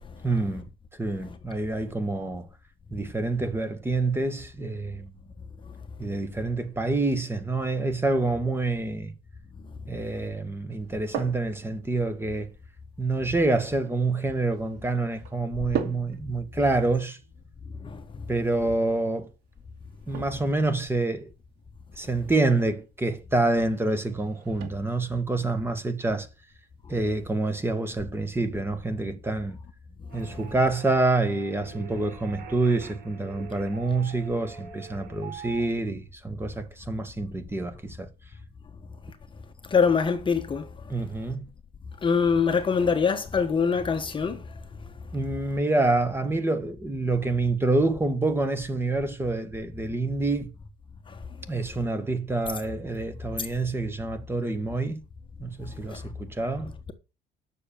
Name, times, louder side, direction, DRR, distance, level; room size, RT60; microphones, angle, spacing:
voice 1, 0.2-2.5 2.9-5.1 6.0-9.1 9.9-12.5 13.0-17.2 18.3-19.3 20.1-21.3 22.0-26.3 26.9-29.6 30.1-38.1 40.9-41.5 45.1-50.5 51.5-55.0 55.4-56.7, right 2 dB, 15° right, 1.9 m, -27 dB
sound 1, 10.7-28.8, right 8 dB, 85° right, 2.4 m, -43 dB
sound 2, 30.1-35.8, right 7 dB, 65° right, 4.0 m, -44 dB
voice 2, 39.7-40.7 42.0-44.4 51.1-51.2 55.9-56.0, left 5 dB, 30° left, 1.4 m, -24 dB
10.0 x 6.7 x 7.1 m
cardioid pair, 110°, 17 cm